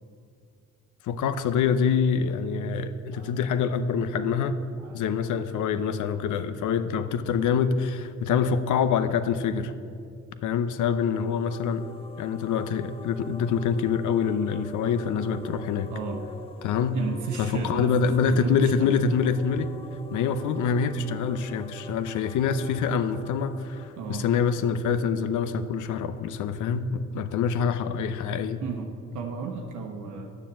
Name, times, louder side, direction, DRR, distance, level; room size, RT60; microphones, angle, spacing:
voice 1, 1.0-4.6 4.9-9.7 10.4-11.9 12.2-15.9 16.6-17.0 17.4-19.7 20.1-28.6, left 6 dB, 75° left, 11 dB, 0.7 m, -25 dB
sound 1, 10.6-25.3, left 3 dB, 20° left, 0.7 m, -45 dB
voice 2, 15.9-16.2 16.9-19.0 24.0-24.3 28.6-30.4, right 5 dB, 85° right, 2 dB, 1.0 m, -34 dB
9.6 x 6.8 x 7.4 m, 2.4 s
cardioid pair, 90°, 30 cm